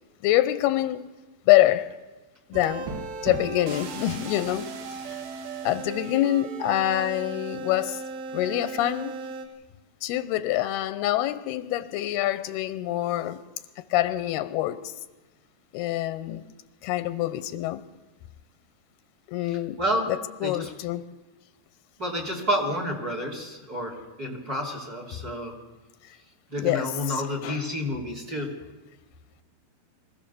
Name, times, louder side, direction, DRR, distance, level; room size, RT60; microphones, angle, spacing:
voice 1, 0.2-1.1 1.5-1.9 2.5-2.9 3.2-4.7 5.7-8.0 8.3-9.1 10.0-13.4 13.9-14.9 15.7-16.4 16.8-17.8 19.3-19.8 20.1-21.1 26.6-27.6, left 14 dB, 85° left, 2.8 m, -25 dB
sound 1, 2.5-9.5, right 4 dB, 70° right, 3.4 m, -36 dB
voice 2, 19.4-20.1 20.4-20.7 22.0-23.9 24.2-25.5 26.5-28.5, equal, 25° right, 3.0 m, -30 dB
24.0 x 16.5 x 6.9 m
omnidirectional pair, 4.5 m